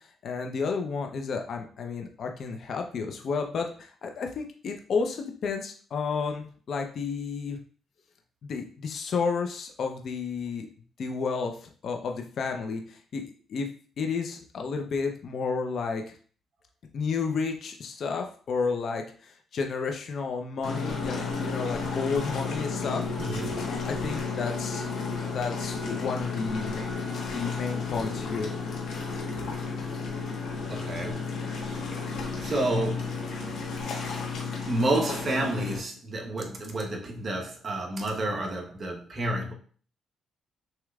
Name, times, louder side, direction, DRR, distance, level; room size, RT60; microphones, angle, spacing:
voice 1, 0.2-7.6 8.4-10.7 11.0-13.2 13.5-13.7 14.0-16.0 16.9-23.0 23.7-24.9 25.3-26.8 27.2-28.5, left 5 dB, 60° left, 0.7 m, -31 dB
sound 1, 20.6-35.8, left 4 dB, 75° left, 1.3 m, -32 dB
voice 2, 23.2-23.8 30.7-31.9 32.4-33.8 34.7-39.5, right 1 dB, 40° right, 1.1 m, -30 dB
6.4 x 3.1 x 2.4 m
cardioid pair, 90°, 0 cm